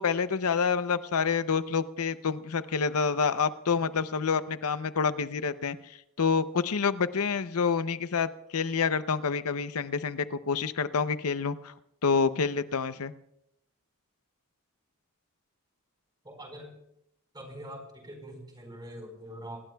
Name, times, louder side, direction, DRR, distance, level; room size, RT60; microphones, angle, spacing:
voice 1, 0.0-11.7 12.0-13.1, left 5 dB, 75° left, 13 dB, 0.6 m, -28 dB
voice 2, 16.2-16.8 17.3-19.6, equal, 20° right, 3 dB, 4.5 m, -43 dB
26.0 x 19.0 x 2.3 m, 0.78 s
head